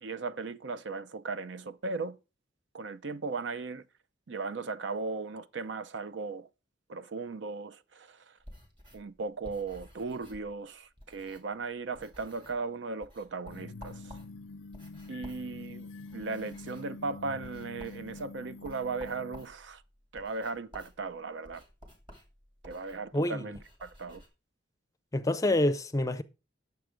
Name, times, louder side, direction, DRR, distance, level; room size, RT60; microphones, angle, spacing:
voice 1, 0.0-2.2 2.7-3.8 4.3-6.5 6.9-8.4 8.9-14.2 15.1-19.8 20.1-21.6 22.6-24.2, right 4 dB, 65° right, 0.6 m, -37 dB
sound 1, 8.4-11.7 11.9-12.7 13.0-24.3, equal, 25° right, 2.4 m, -53 dB
sound 2, 13.5-19.4, left 3 dB, 90° left, 0.5 m, -45 dB
voice 2, 23.1-23.4 25.1-26.2, left 1 dB, 15° left, 0.5 m, -27 dB
9.3 x 6.8 x 5.0 m
head